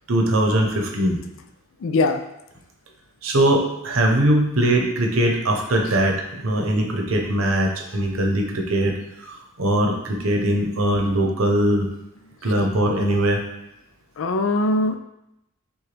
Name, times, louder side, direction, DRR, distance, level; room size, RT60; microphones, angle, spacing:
voice 1, 0.1-1.2 3.2-8.9 9.2-11.9 12.4-13.4, right 1 dB, 80° right, 2 dB, 0.8 m, -21 dB
voice 2, 1.8-2.2 14.2-15.0, left 2 dB, 65° left, 7 dB, 0.4 m, -21 dB
6.7 x 2.3 x 3.3 m, 0.86 s
head